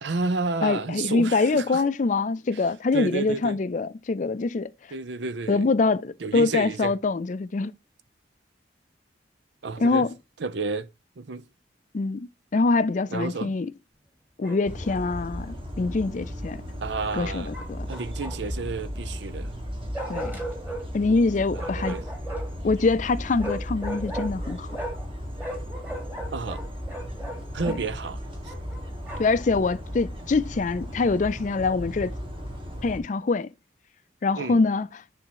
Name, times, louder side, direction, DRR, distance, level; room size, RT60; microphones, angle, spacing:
voice 1, 0.0-1.8 2.5-2.6 2.9-3.6 4.9-5.7 6.2-7.0 9.6-10.1 10.4-10.9 11.2-11.4 13.1-13.5 16.8-17.5 17.9-19.5 21.5-22.0 26.3-26.7 27.5-28.5 34.4-34.6, right 4 dB, 70° right, 0.6 m, -31 dB
voice 2, 0.6-4.7 5.5-7.7 9.8-10.1 11.9-13.7 14.4-16.6 17.1-17.9 20.1-20.4 20.9-22.0 22.6-24.7 27.7-27.8 29.2-32.1 32.8-33.5 34.2-34.9, left 3 dB, 45° left, 0.4 m, -24 dB
Bark, 14.4-15.1 17.5-18.6 19.9-20.8 21.5-22.6 23.4-25.1 25.4-27.8 28.4-29.4, right 1 dB, 10° right, 1.9 m, -37 dB
sound 1, 14.6-33.0, equal, 30° right, 1.8 m, -36 dB
9.8 x 3.6 x 2.9 m
head